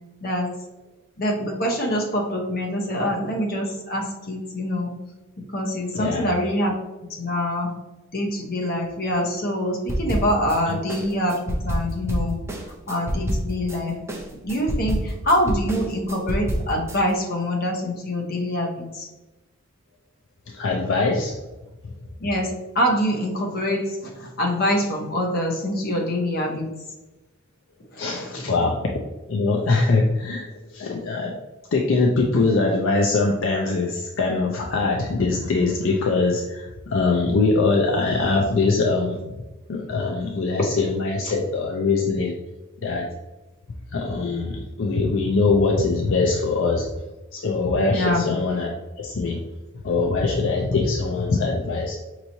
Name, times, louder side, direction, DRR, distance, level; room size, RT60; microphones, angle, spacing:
voice 1, 1.2-4.9 5.5-6.7 7.2-7.7 8.1-12.4 12.9-14.0 14.4-19.1 22.2-26.7 27.9-28.7 47.9-48.4, equal, 45° left, 0 dB, 0.9 m, -25 dB
voice 2, 5.9-6.3 10.7-10.8 20.5-21.4 28.0-28.8 29.3-31.4 31.7-39.2 39.7-42.4 42.8-43.1 43.9-46.9 47.3-48.7 49.0-49.4 49.8-52.0, left 3 dB, 65° left, 0 dB, 0.5 m, -22 dB
sound 1, 9.9-10.6 10.9-13.8 14.1-17.0, equal, 15° right, 0.6 m, -27 dB
5.5 x 3.0 x 2.7 m, 1.1 s
head